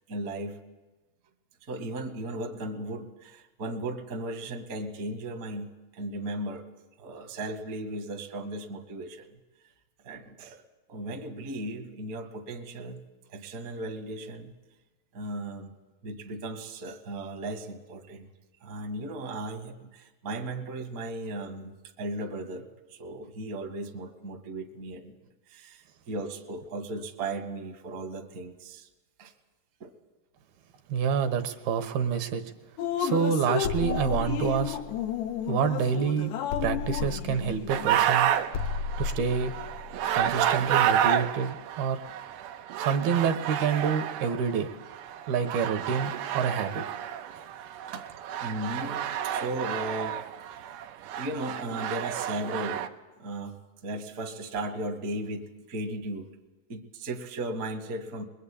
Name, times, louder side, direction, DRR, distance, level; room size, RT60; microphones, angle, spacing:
voice 1, 0.1-0.6 1.7-6.6 7.0-9.4 10.0-10.6 10.9-13.0 13.3-14.5 15.1-15.7 16.0-18.3 18.6-25.2 25.5-28.9 29.2-29.3 29.8-29.9 47.9-48.1 48.4-50.2 50.5-50.6 51.1-52.8 53.2-56.3 56.7-58.2, right 1 dB, 40° right, 4 dB, 1.3 m, -36 dB
voice 2, 30.9-32.4 33.0-34.8 35.5-36.3 36.6-38.3 39.0-39.5 40.1-42.0 42.8-44.7 45.3-46.8, right 7 dB, 70° right, 8 dB, 3.0 m, -27 dB
Drip, 32.8-38.0, left 10 dB, 85° left, 3.4 m, -32 dB
sound 1, 33.6-36.0 36.5-41.2, left 4 dB, 65° left, 1.8 m, -35 dB
sound 2, 37.7-52.9, right 10 dB, 85° right, 3.2 m, -30 dB
23.0 x 22.0 x 8.7 m, 1.1 s
omnidirectional pair, 4.9 m